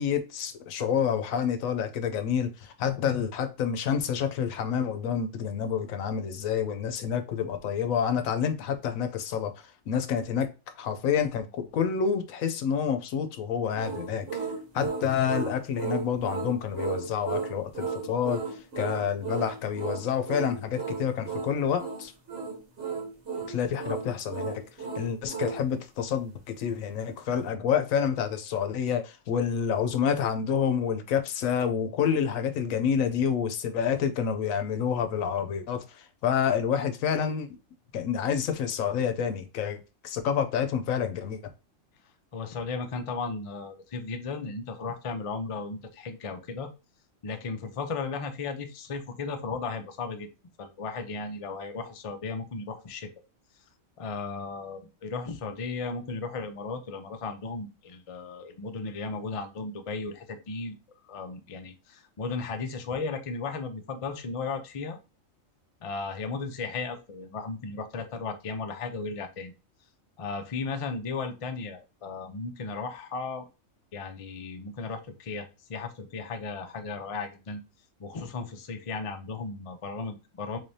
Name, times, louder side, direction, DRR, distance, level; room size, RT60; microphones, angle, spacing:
voice 1, 0.0-10.5 10.8-14.5 14.7-22.1 23.5-24.6 24.9-37.6 37.9-41.4, left 7 dB, 85° left, 1.0 m, -28 dB
sound 1, 13.8-25.6, right 5 dB, 60° right, 1.2 m, -34 dB
voice 2, 42.3-46.7 47.2-50.3 50.6-53.1 54.0-60.7 61.1-65.0 65.8-69.5 70.2-73.5 73.9-77.6 78.0-80.6, left 4 dB, 55° left, 0.3 m, -35 dB
3.8 x 3.3 x 2.7 m
omnidirectional pair, 1.4 m